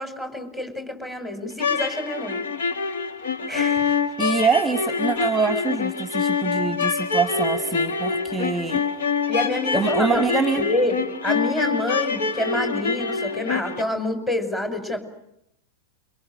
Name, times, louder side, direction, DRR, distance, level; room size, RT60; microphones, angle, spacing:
voice 1, 0.0-2.4 3.5-4.0 9.3-10.3 10.6-15.1, left 1 dB, 15° left, 7 dB, 6.1 m, -27 dB
sound 1, 1.5-13.8, left 5 dB, 60° left, 2.0 m, -25 dB
voice 2, 4.2-8.8 9.7-10.6, right 5 dB, 10° right, 11 dB, 1.6 m, -24 dB
29.0 x 25.5 x 6.5 m, 0.78 s
figure-of-eight pair, 90°, 0 cm